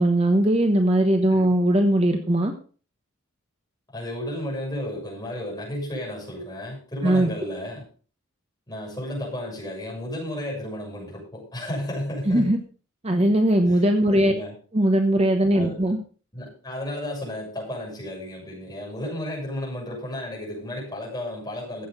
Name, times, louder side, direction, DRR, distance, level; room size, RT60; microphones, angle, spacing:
voice 1, 0.0-2.5 7.0-7.3 12.3-12.6 13.0-14.3 14.7-16.0, right 1 dB, 30° right, 6 dB, 1.0 m, -20 dB
voice 2, 3.9-7.8 8.7-12.5 13.7-13.8 14.1-14.6 15.5-15.8 16.3-21.9, left 1 dB, 20° left, -3 dB, 6.7 m, -33 dB
14.5 x 8.0 x 5.4 m, 0.40 s
head